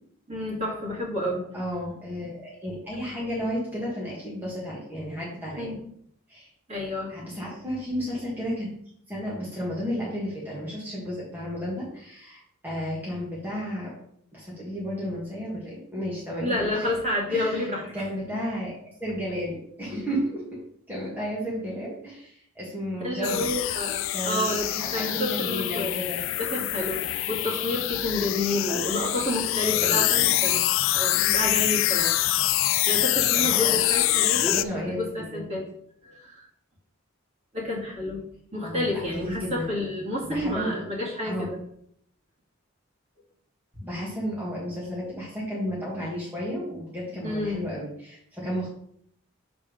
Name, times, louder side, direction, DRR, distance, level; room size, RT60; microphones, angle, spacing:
voice 1, 0.3-1.4 5.6-5.7 6.7-7.1 16.4-17.8 22.9-26.0 26.4-30.6 30.9-32.2 32.8-35.6 36.0-36.4 37.5-38.2 38.5-41.6 47.2-47.6, left 1 dB, 30° right, -5 dB, 2.3 m, -29 dB
voice 2, 1.5-5.7 6.3-6.5 7.1-8.7 9.1-13.9 14.3-16.9 17.3-20.6 20.9-23.6 24.1-26.2 28.7-28.8 29.6-30.3 33.3-33.8 34.3-35.6 38.6-40.9 41.2-41.5 43.8-48.7, equal, 10° right, -6 dB, 1.7 m, -33 dB
sound 1, 23.2-34.6, left 15 dB, 70° left, 0.3 m, -25 dB
7.0 x 4.1 x 5.2 m, 0.67 s
head